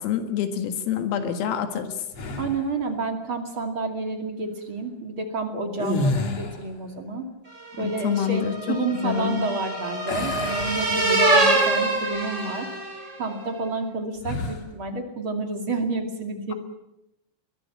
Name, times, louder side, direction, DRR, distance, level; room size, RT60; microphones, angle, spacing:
voice 1, 0.0-2.0 7.8-9.5, left 8 dB, 80° left, 7 dB, 4.4 m, -27 dB
sound 1, 2.1-2.8 5.7-6.8 10.1-11.5 12.0-12.2 14.2-14.7, left 2 dB, 40° left, 2.8 m, -30 dB
voice 2, 2.4-7.2 7.8-8.4 8.7-12.7 13.2-16.5, right 3 dB, 40° right, 4 dB, 1.8 m, -29 dB
sound 2, 7.7-13.2, right 2 dB, 15° right, 4.8 m, -24 dB
22.5 x 20.5 x 8.7 m, 0.87 s
omnidirectional pair, 6.0 m